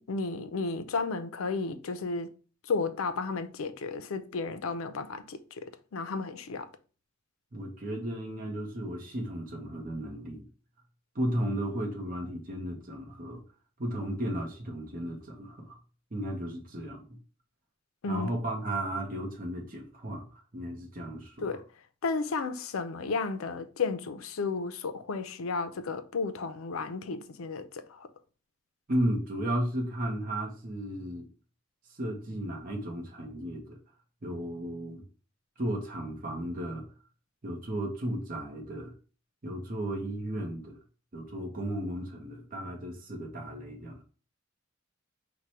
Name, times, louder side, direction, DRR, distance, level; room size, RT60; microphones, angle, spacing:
voice 1, 0.0-2.3 2.6-6.7 18.0-18.3 21.4-21.6 22.0-28.1, left 4 dB, 85° left, 0.5 m, -33 dB
voice 2, 7.5-10.4 11.1-13.4 13.8-15.8 16.1-17.2 18.1-21.6 28.9-31.2 31.9-33.8 34.2-35.0 35.6-36.8 37.4-38.9 39.4-40.8 41.1-44.0, right 1 dB, 45° right, 0.8 m, -34 dB
4.6 x 2.2 x 4.2 m
head